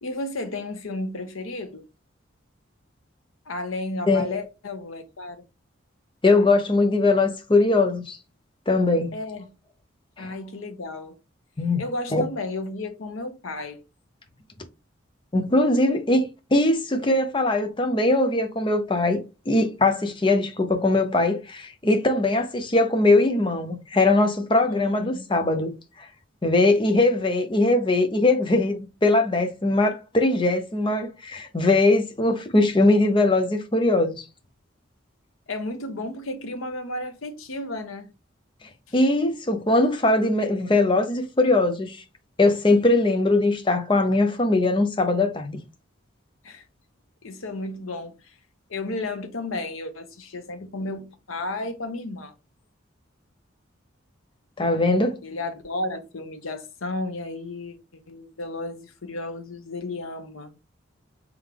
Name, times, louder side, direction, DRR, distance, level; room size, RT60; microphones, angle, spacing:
voice 1, 0.0-1.8 3.5-5.4 9.1-9.5 10.2-11.2 11.8-13.8 24.7-25.3 35.5-38.1 46.4-46.6 47.2-48.1 48.7-52.3 55.2-57.8 58.1-60.6, left 2 dB, 90° left, 0.8 m, -33 dB
voice 2, 6.2-8.2 8.7-9.1 10.2-10.3 11.6-11.8 12.1-12.2 15.3-16.3 16.5-25.7 26.4-34.2 38.9-42.0 42.4-45.6 54.6-55.2, left 2 dB, 25° left, 0.6 m, -21 dB
3.7 x 3.5 x 3.3 m
head